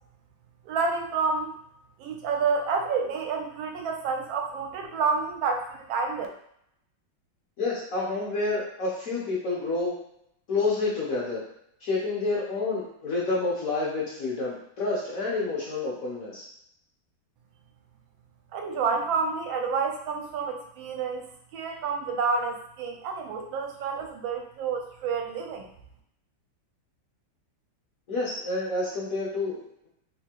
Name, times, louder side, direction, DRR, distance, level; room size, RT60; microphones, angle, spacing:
voice 1, 0.6-1.5 2.0-6.3 18.5-21.2 21.5-25.7, right 5 dB, 80° right, 2 dB, 1.3 m, -29 dB
voice 2, 7.6-10.0 10.5-11.4 11.8-16.5 28.1-29.9, left 3 dB, 55° left, -5 dB, 1.1 m, -29 dB
3.5 x 2.7 x 2.9 m, 0.73 s
omnidirectional pair, 2.1 m